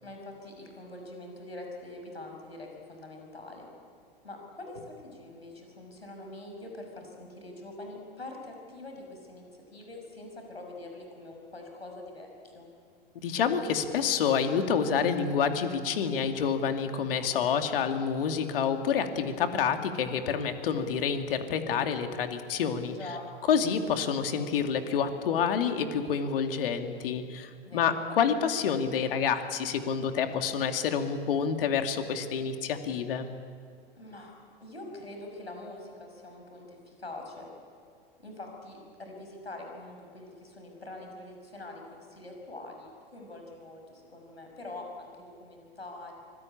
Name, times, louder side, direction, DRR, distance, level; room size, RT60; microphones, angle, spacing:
voice 1, 0.0-3.7 4.2-9.4 9.7-12.7 22.8-23.2 27.6-28.0 33.9-34.3 34.6-37.5 38.2-46.1, left 2 dB, 90° left, 2 dB, 5.9 m, -44 dB
voice 2, 13.2-23.0 23.5-33.3, left 7 dB, 65° left, 6 dB, 2.5 m, -28 dB
25.5 x 19.5 x 8.8 m, 2.2 s
figure-of-eight pair, 95°, 30 cm